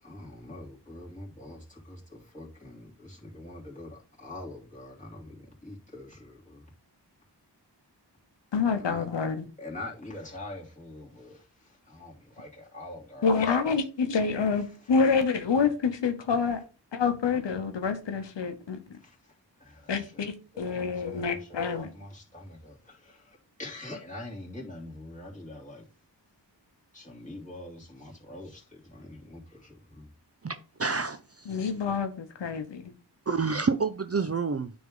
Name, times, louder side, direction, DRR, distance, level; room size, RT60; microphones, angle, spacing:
voice 1, 0.0-6.6 8.8-9.1 9.6-13.5 19.0-19.2 19.6-21.4 21.7-25.8 26.9-30.1, left 2 dB, 15° left, 2.9 m, -44 dB
voice 2, 8.5-9.5 13.2-16.6 16.9-18.8 19.9-21.9 31.5-32.9, left 5 dB, 90° left, 0.8 m, -27 dB
voice 3, 30.4-31.6 33.3-34.7, right 5 dB, 35° right, 0.5 m, -29 dB
9.4 x 3.6 x 3.7 m
cardioid pair, 45°, 42 cm